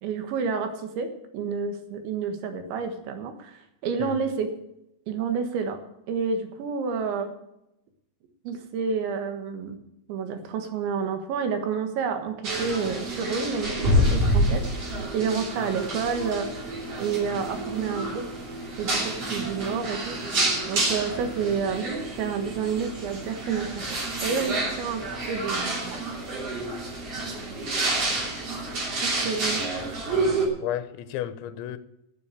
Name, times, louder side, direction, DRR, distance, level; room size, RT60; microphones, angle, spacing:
voice 1, 0.0-1.1 1.3-4.5 5.1-5.8 6.1-7.3 8.5-9.8 10.1-14.6 15.1-16.7 17.0-18.3 18.8-20.2 20.7-21.9 22.2-26.0 27.2-27.4 29.0-29.6, right 6 dB, 80° right, 3.8 m, -29 dB
sound 1, 12.4-30.5, right 1 dB, 35° right, 3.5 m, -28 dB
voice 2, 30.6-31.8, left 11 dB, 85° left, 3.1 m, -33 dB
12.0 x 7.3 x 8.3 m
omnidirectional pair, 5.2 m